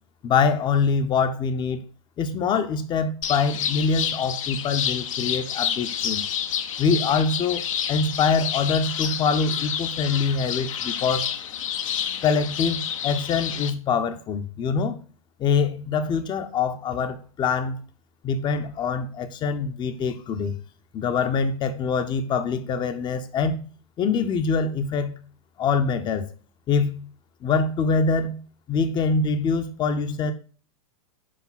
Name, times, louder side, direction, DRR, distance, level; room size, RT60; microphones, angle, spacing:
voice 1, 0.2-1.8 2.2-6.2 6.8-7.6 7.9-11.3 12.2-15.0 15.4-17.8 18.2-20.6 20.9-23.6 24.0-25.1 25.6-26.3 26.7-27.0 27.4-28.4 28.7-30.3, left 5 dB, 25° left, 9 dB, 0.7 m, -24 dB
sound 1, 3.2-13.7, left 9 dB, 60° left, 0.7 m, -29 dB
5.0 x 5.0 x 3.9 m, 0.40 s
figure-of-eight pair, 100°, 18 cm